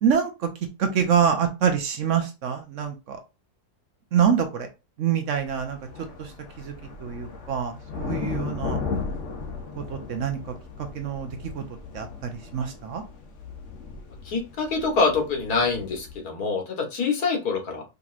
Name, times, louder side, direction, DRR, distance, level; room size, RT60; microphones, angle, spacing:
voice 1, 0.0-0.5 0.8-3.2 4.1-4.7 5.0-5.8 6.2-6.3 6.6-6.7 7.0-8.8 9.8-10.4 10.8-11.3 11.5-11.6 11.9-13.0, right 7 dB, 60° right, 5 dB, 1.0 m, -25 dB
sound 1, 5.3-16.2, left 4 dB, 55° left, 1.0 m, -36 dB
voice 2, 14.3-17.8, left 4 dB, 85° left, 2 dB, 1.8 m, -25 dB
5.2 x 3.0 x 2.4 m, 0.27 s
omnidirectional pair, 1.6 m